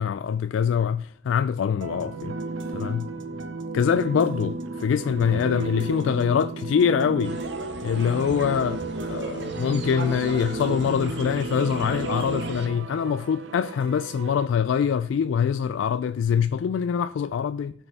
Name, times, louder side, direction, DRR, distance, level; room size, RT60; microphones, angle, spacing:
voice 1, 0.0-2.4 2.7-3.1 3.7-7.4 7.8-17.7, left 7 dB, 85° left, 0.3 m, -24 dB
sound 1, 1.8-14.5, right 3 dB, 85° right, 0.8 m, -33 dB
sound 2, 7.2-12.7, right 2 dB, 65° right, 1.4 m, -39 dB
15.5 x 5.6 x 4.1 m
head